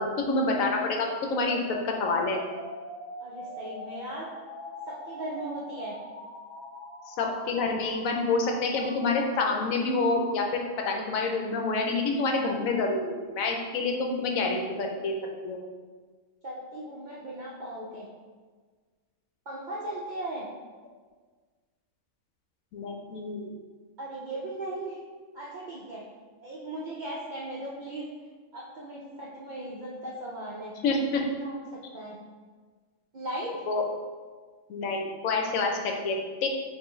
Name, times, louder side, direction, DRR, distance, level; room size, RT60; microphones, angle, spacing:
voice 1, 0.0-2.4 7.1-10.6 10.9-15.2 15.4-15.6 22.7-23.5 30.8-31.2 33.7-33.8 34.7-36.5, left 3 dB, 85° left, 2 dB, 1.0 m, -27 dB
sound 1, 1.4-11.4, left 1 dB, 40° left, 1.1 m, -44 dB
voice 2, 3.2-4.3 4.9-6.0 16.4-18.1 19.5-20.5 24.0-25.0 25.3-26.0 26.4-28.1 28.5-30.7 31.4-31.6 31.9-32.2 33.1-33.5, right 1 dB, 65° right, -5 dB, 0.4 m, -37 dB
5.4 x 2.5 x 3.0 m, 1.5 s
omnidirectional pair, 1.4 m